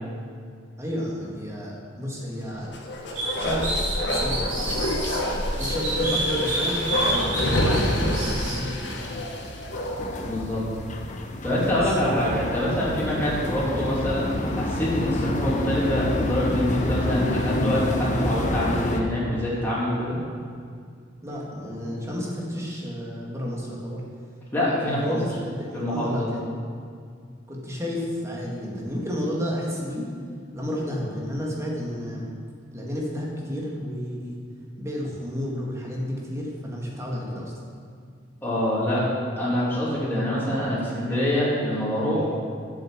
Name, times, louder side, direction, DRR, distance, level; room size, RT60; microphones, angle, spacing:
voice 1, 0.8-2.7 3.4-3.7 4.1-4.4 5.5-9.2 11.6-12.3 21.2-24.0 24.9-26.4 27.5-30.1 30.5-32.3 32.7-34.4 34.8-37.5, equal, 15° right, -4 dB, 2.0 m, -31 dB
Bark, 2.7-10.2 10.6-10.7, left 1 dB, 65° left, 1.4 m, -27 dB
sound 1, 3.1-5.2 5.6-8.6, right 2 dB, 40° right, 2.7 m, -29 dB
sound 2, 9.0-19.0, left 1 dB, 40° left, 0.8 m, -28 dB
voice 2, 10.2-10.6 11.4-20.2 24.5-25.2 25.7-26.3 38.4-39.0 39.4-42.3, left 1 dB, 10° left, -8 dB, 2.9 m, -25 dB
7.7 x 7.5 x 7.4 m, 2.2 s
head